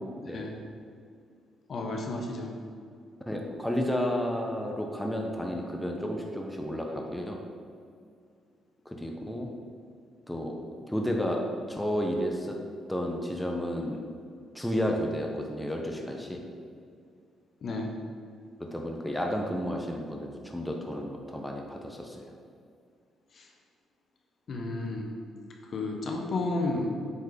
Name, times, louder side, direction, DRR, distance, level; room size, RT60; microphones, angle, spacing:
voice 1, 0.3-0.6 1.7-2.5 17.6-17.9 23.3-23.5 24.5-25.1 25.6-26.9, left 2 dB, 55° left, 1 dB, 1.2 m, -32 dB
voice 2, 3.3-7.4 8.8-9.5 10.3-10.6 10.9-11.4 11.7-12.6 12.9-14.0 14.5-16.4 18.6-22.4, equal, 5° left, 1 dB, 1.0 m, -32 dB
8.4 x 4.5 x 5.2 m, 2.3 s
cardioid pair, 90°, 0 cm